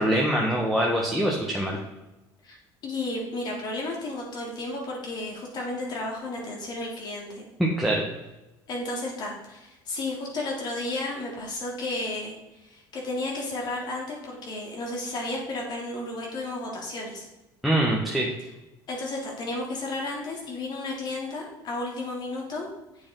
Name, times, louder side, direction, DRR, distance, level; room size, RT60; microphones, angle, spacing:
voice 1, 0.0-1.8 7.6-8.1 17.6-18.3, right 1 dB, ahead, -3 dB, 1.5 m, -24 dB
voice 2, 2.8-7.4 8.7-12.3 12.6-17.3 18.9-22.7, left 2 dB, 50° left, -1 dB, 3.3 m, -33 dB
8.5 x 7.9 x 4.0 m, 1.0 s
supercardioid pair, 105°, 9 cm